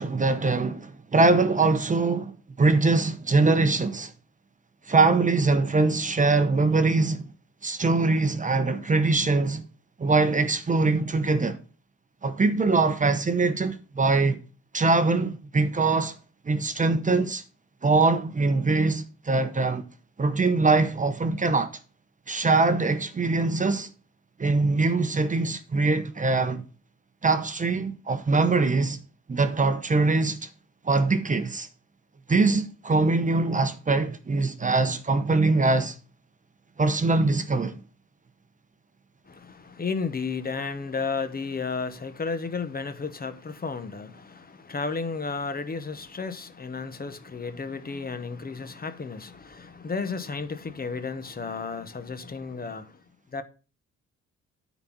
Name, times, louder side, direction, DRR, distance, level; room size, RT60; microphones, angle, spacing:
voice 1, 0.0-2.3 2.6-4.1 4.9-7.2 7.6-9.6 10.0-11.6 12.2-14.4 14.7-16.1 16.4-17.4 17.8-19.9 20.2-21.8 22.3-23.9 24.4-26.6 27.2-29.0 29.3-30.5 30.8-31.7 32.3-36.0 36.8-37.8, right 3 dB, 25° right, 0.8 m, -23 dB
voice 2, 39.3-52.9 53.3-53.4, left 4 dB, 30° left, 1.0 m, -33 dB
9.5 x 4.1 x 6.1 m
cardioid pair, 90°, 30 cm